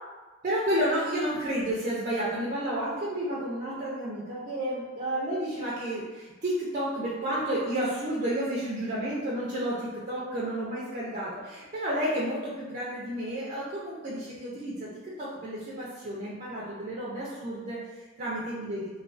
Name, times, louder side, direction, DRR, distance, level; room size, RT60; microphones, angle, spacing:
voice 1, 0.4-18.8, right 1 dB, 40° right, -6 dB, 0.4 m, -31 dB
2.3 x 2.3 x 2.4 m, 1.2 s
head